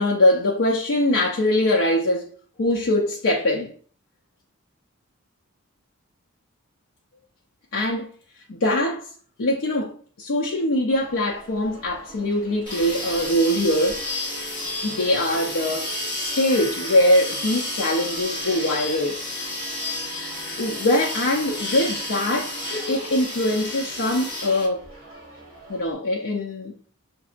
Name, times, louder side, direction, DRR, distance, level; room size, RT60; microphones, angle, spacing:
voice 1, 0.0-2.3 2.6-3.7 7.7-8.1 8.5-9.1 9.4-14.0 14.8-15.9 16.2-19.2 20.6-24.8 25.7-26.7, left 1 dB, 70° left, 0.6 m, -22 dB
sound 1, 10.9-25.9, right 2 dB, 40° right, 1.8 m, -44 dB
sound 2, 12.7-24.7, left 1 dB, 25° left, 1.3 m, -31 dB
5.9 x 2.7 x 2.4 m
head